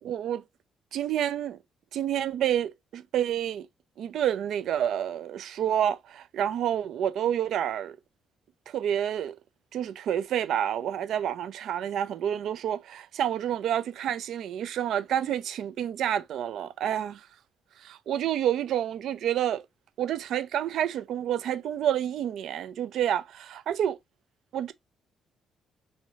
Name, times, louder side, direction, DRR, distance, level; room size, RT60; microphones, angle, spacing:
voice 1, 0.0-0.4 0.9-1.6 1.9-3.7 4.0-8.0 8.7-9.3 9.7-17.3 17.8-19.6 20.0-24.0 24.5-24.7, right 10 dB, 75° right, 0.5 m, -29 dB
6.3 x 2.8 x 2.8 m
cardioid pair, 90°, 0 cm